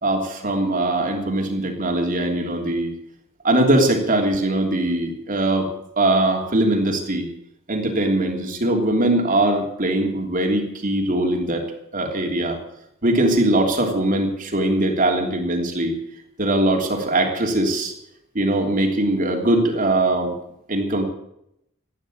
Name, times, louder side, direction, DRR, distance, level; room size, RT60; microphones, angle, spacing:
voice 1, 0.0-2.9 3.4-7.3 7.7-11.6 11.9-12.6 13.0-16.0 16.4-17.9 18.3-20.3 20.7-21.0, right 1 dB, 40° right, 2 dB, 3.0 m, -21 dB
15.5 x 9.8 x 8.5 m, 0.78 s
head